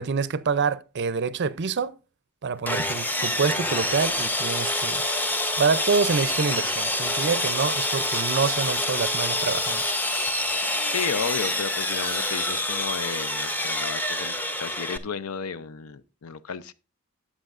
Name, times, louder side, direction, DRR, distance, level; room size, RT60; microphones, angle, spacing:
voice 1, 0.0-1.9 2.4-5.0 5.6-9.9, right 5 dB, 50° right, 0.5 m, -26 dB
Sawing, 2.7-15.0, left 1 dB, 10° left, 0.6 m, -27 dB
voice 2, 10.9-16.7, left 6 dB, 80° left, 0.6 m, -33 dB
13.0 x 8.4 x 2.5 m
head